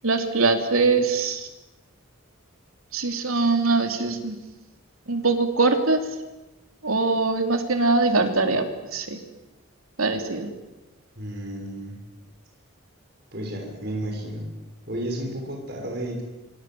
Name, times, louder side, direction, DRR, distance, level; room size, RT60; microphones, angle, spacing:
voice 1, 0.0-1.5 2.9-4.3 5.1-6.0 6.8-8.6 8.9-9.2 10.0-10.5, right 3 dB, 90° right, 6 dB, 3.4 m, -22 dB
voice 2, 11.2-12.0 13.3-14.5 14.9-16.2, right 1 dB, 50° right, 1 dB, 6.1 m, -32 dB
26.5 x 25.5 x 7.9 m, 1.1 s
head